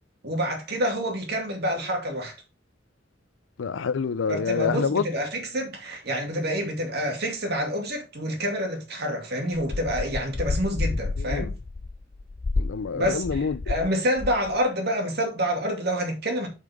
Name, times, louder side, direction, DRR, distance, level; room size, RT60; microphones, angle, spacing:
voice 1, 0.2-2.4 4.3-11.5 12.9-16.5, equal, 60° right, 2.5 m, -28 dB
voice 2, 3.6-5.0 11.2-11.5 12.6-13.6, left 5 dB, 90° left, 0.5 m, -27 dB
sound 1, 9.5-13.9 14.2-14.6, left 3 dB, 30° left, 0.3 m, -30 dB
8.4 x 5.7 x 3.5 m
head